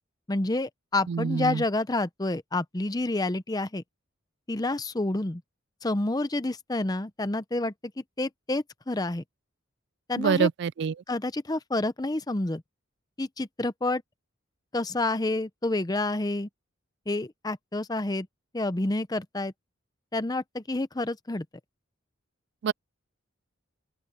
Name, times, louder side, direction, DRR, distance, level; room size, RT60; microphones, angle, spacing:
voice 1, 0.3-3.8 4.5-5.4 5.8-7.9 8.2-9.2 10.1-10.5 11.1-12.6 13.2-14.0 14.7-16.5 17.1-18.3 18.5-19.5 20.1-21.5, left 2 dB, 20° left, 0.6 m, -29 dB
voice 2, 1.1-1.6 10.2-10.9 22.6-22.7, right 6 dB, 55° right, 0.3 m, -25 dB
open air
head